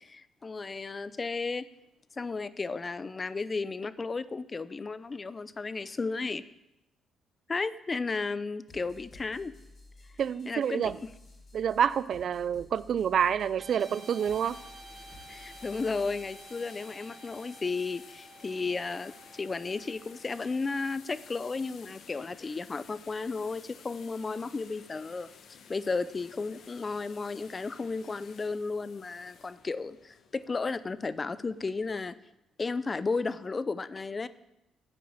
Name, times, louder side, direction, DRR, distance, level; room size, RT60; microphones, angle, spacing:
voice 1, 0.0-1.7 2.1-6.4 7.5-9.5 10.5-10.9 15.3-25.3 25.7-32.2 32.6-34.3, left 4 dB, 30° left, 0.5 m, -34 dB
sound 1, 8.7-16.4, left 2 dB, 50° left, 3.9 m, -54 dB
voice 2, 10.2-11.0 11.5-14.6, right 8 dB, 60° right, 0.4 m, -28 dB
Guitar, 13.5-22.0, right 3 dB, 40° right, 0.8 m, -52 dB
sound 2, 13.8-32.1, left 6 dB, 65° left, 1.0 m, -54 dB
9.6 x 5.4 x 7.8 m
cardioid pair, 90°, 0 cm